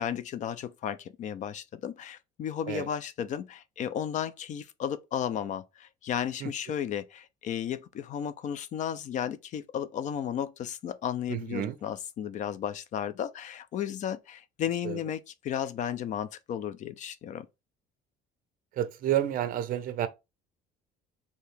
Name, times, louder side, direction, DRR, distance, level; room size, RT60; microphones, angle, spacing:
voice 1, 0.0-17.5, left 9 dB, 40° left, 0.4 m, -34 dB
voice 2, 11.3-11.7 14.8-15.0 18.7-20.1, right 11 dB, 45° right, 0.6 m, -30 dB
4.7 x 2.8 x 3.3 m
cardioid pair, 170°, 20 cm